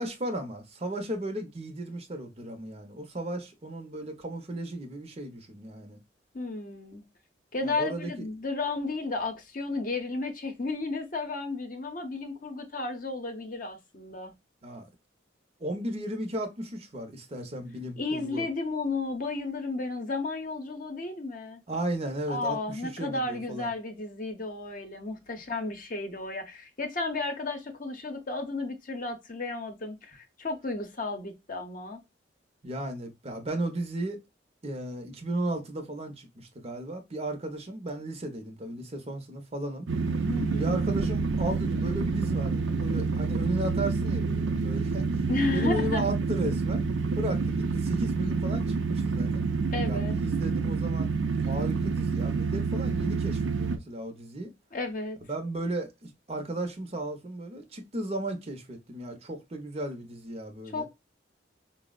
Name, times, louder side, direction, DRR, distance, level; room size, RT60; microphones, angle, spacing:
voice 1, 0.0-6.0 7.6-8.1 14.6-14.9 15.6-18.5 21.7-23.7 32.6-34.2 34.6-39.9 40.6-46.8 47.2-49.5 49.9-54.5 55.2-60.9, right 1 dB, 35° right, 0.6 m, -35 dB
voice 2, 6.3-7.0 7.5-14.3 18.0-21.6 22.3-32.0 40.3-40.8 45.3-46.0 49.7-50.2 54.7-55.2 60.7-60.9, left 3 dB, 45° left, 0.7 m, -33 dB
sound 1, 39.9-53.8, right 4 dB, 90° right, 0.5 m, -28 dB
4.2 x 2.0 x 2.2 m
head